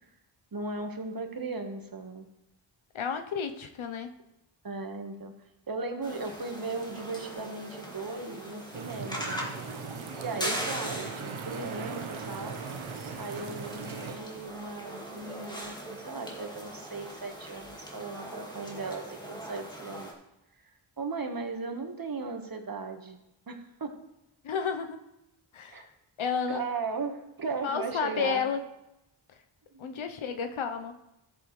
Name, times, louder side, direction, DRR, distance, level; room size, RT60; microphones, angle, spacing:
voice 1, 0.5-2.3 4.6-5.3 5.7-9.5 10.2-12.6 13.2-20.1 20.6-20.7 21.0-23.2 23.5-23.9 25.7-25.9 26.5-28.4 29.7-30.1, right 3 dB, 45° right, 4 dB, 1.5 m, -37 dB
voice 2, 2.9-4.1 24.4-25.0 25.5-25.9 26.2-26.6 27.6-28.6 29.8-31.0, left 6 dB, 85° left, 7 dB, 0.9 m, -31 dB
sound 1, 6.0-20.1, equal, 10° left, 2.1 m, -40 dB
sound 2, 8.7-14.2, right 5 dB, 80° right, 0.9 m, -39 dB
14.0 x 7.0 x 3.2 m, 0.89 s
cardioid pair, 60°, 47 cm